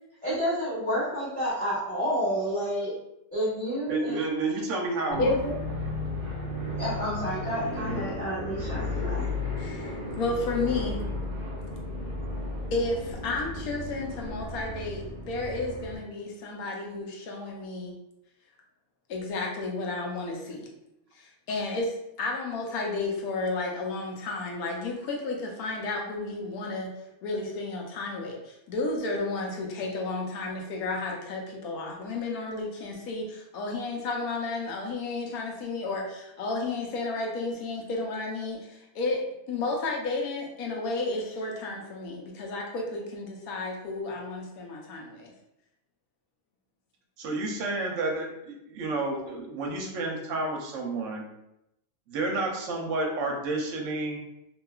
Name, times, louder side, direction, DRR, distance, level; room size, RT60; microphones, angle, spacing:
voice 1, 0.2-3.0 3.3-4.2 5.1-5.5 6.6-9.2, equal, 10° left, -12 dB, 0.8 m, -30 dB
voice 2, 3.9-5.3 47.2-51.3 52.1-54.2, right 2 dB, 65° right, 1 dB, 0.9 m, -30 dB
sound 1, 5.1-16.0, left 2 dB, 35° right, 0.8 m, -34 dB
voice 3, 5.2-5.5 9.6-11.0 12.7-17.9 19.1-20.7 21.1-26.9 27.2-45.3, left 3 dB, 80° left, 0 dB, 1.1 m, -32 dB
2.8 x 2.3 x 2.2 m, 0.84 s
omnidirectional pair, 1.5 m